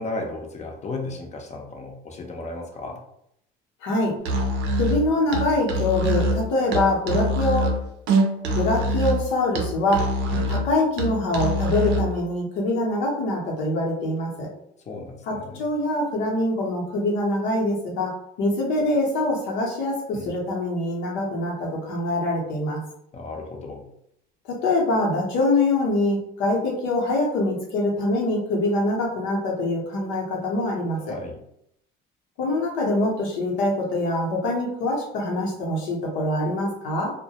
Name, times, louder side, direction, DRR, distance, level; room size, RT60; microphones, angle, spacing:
voice 1, 0.0-3.0 10.3-10.5 14.9-15.6 20.1-20.3 23.1-23.9 31.1-31.4, left 2 dB, 35° left, 2 dB, 0.6 m, -34 dB
voice 2, 3.8-4.1 4.7-7.7 8.6-10.1 10.5-14.5 15.3-22.8 24.5-31.1 32.4-37.1, left 2 dB, 85° left, -2 dB, 0.8 m, -24 dB
Musical instrument, 4.2-12.2, right 1 dB, 75° right, 0.5 m, -25 dB
2.2 x 2.1 x 2.7 m, 0.74 s
cardioid pair, 100°, 19 cm